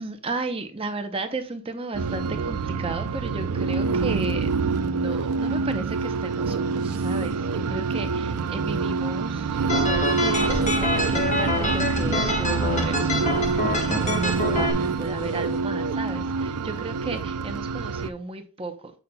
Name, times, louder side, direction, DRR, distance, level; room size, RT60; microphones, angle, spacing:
voice 1, 0.0-18.9, right 3 dB, 25° right, 0.7 m, -34 dB
sound 1, 1.9-18.1, right 4 dB, 85° right, 0.5 m, -26 dB
sound 2, 9.7-14.7, left 1 dB, 30° left, 1.2 m, -26 dB
sound 3, 10.0-15.6, left 1 dB, 55° left, 1.9 m, -39 dB
8.3 x 5.4 x 2.2 m
head